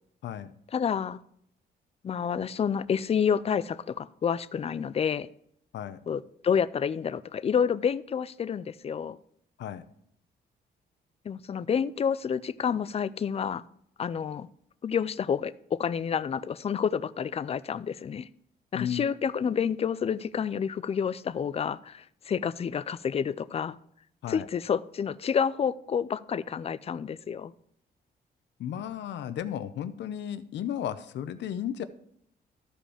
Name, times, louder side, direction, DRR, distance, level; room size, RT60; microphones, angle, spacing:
voice 1, 0.7-1.2 2.0-5.3 6.1-9.2 11.3-13.6 14.0-14.5 14.8-18.3 18.7-23.8 24.3-27.5, left 7 dB, 35° left, 18 dB, 0.4 m, -29 dB
voice 2, 18.7-19.1 24.2-24.5 28.6-31.8, left 10 dB, 80° left, 13 dB, 0.7 m, -34 dB
13.5 x 5.1 x 4.9 m, 0.71 s
cardioid pair, 105°, 18 cm